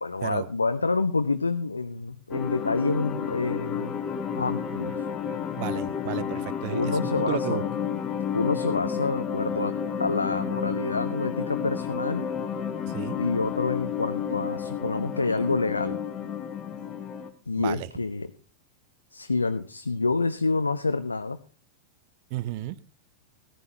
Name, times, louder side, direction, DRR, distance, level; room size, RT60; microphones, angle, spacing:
voice 1, 0.0-4.0 4.4-5.0 6.7-7.7 8.3-12.3 13.2-16.0 17.5-18.3 19.1-21.4, left 3 dB, 80° left, 0.5 m, -27 dB
sound 1, 2.3-17.3, left 7 dB, 25° left, 1.4 m, -31 dB
voice 2, 5.6-7.6 12.9-13.2 17.6-17.9 22.3-22.8, right 16 dB, 45° right, 0.5 m, -33 dB
15.0 x 14.5 x 2.8 m
figure-of-eight pair, 90°, 0 cm